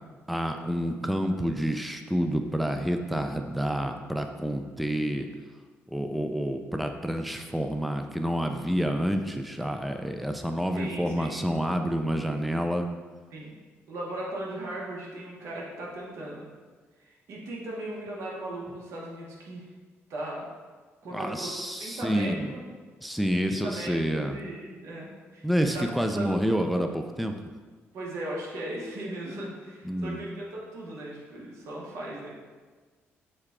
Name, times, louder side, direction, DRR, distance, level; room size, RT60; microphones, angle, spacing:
voice 1, 0.3-5.3 5.9-12.9 21.1-22.5 23.0-24.4 25.4-27.3 29.8-30.2, equal, ahead, 5 dB, 0.3 m, -28 dB
voice 2, 10.8-11.4 13.3-13.5 13.9-16.5 17.0-19.7 20.1-20.4 21.0-21.5 21.8-22.6 23.5-25.9 26.1-26.6 27.9-32.3, right 1 dB, 75° right, -4 dB, 1.0 m, -37 dB
6.4 x 2.3 x 3.6 m, 1.4 s
cardioid pair, 105°, 5 cm